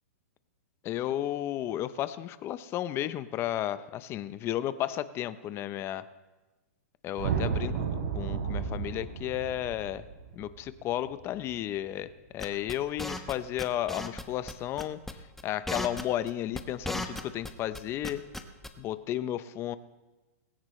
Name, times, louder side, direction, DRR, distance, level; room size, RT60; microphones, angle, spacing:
voice 1, 0.8-6.0 7.0-10.1 10.3-18.2 18.8-19.8, left 12 dB, 30° left, 14 dB, 0.7 m, -33 dB
sound 1, 7.2-11.6, right 7 dB, 60° right, 3.1 m, -33 dB
sound 2, 12.4-13.3 13.6-14.2 14.5-14.6 14.8-15.1 15.4-17.5 17.7-18.7, left 1 dB, 5° left, 1.0 m, -35 dB
19.5 x 16.5 x 3.2 m, 1.2 s
hypercardioid pair, 130°, 9 cm